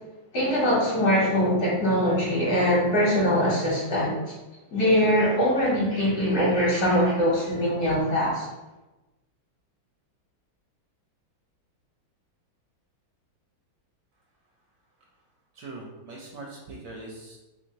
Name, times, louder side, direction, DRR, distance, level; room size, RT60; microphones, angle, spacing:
voice 1, 0.3-4.1 4.7-8.5, equal, 55° left, -6 dB, 1.4 m, -22 dB
voice 2, 15.6-17.4, right 2 dB, 70° right, -1 dB, 1.1 m, -41 dB
3.5 x 3.3 x 2.8 m, 1.1 s
omnidirectional pair, 2.2 m